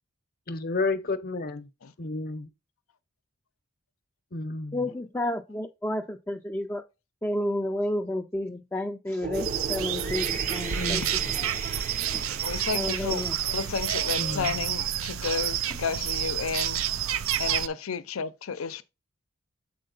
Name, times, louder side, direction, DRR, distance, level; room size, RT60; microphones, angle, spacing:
voice 1, 0.5-1.7 2.0-2.5 4.3-4.8 10.7-11.3 14.2-14.6, left 3 dB, 45° left, 0.8 m, -31 dB
voice 2, 4.7-6.8 7.2-11.6 12.1-12.3 12.7-13.4 15.7-15.8, left 1 dB, 10° left, 0.4 m, -31 dB
sound 1, 9.2-14.4, right 4 dB, 40° right, 0.6 m, -37 dB
sound 2, 9.3-17.7, right 10 dB, 85° right, 0.5 m, -29 dB
voice 3, 12.4-13.2 13.5-16.8 17.4-18.8, left 5 dB, 85° left, 0.6 m, -32 dB
7.5 x 4.5 x 3.9 m
head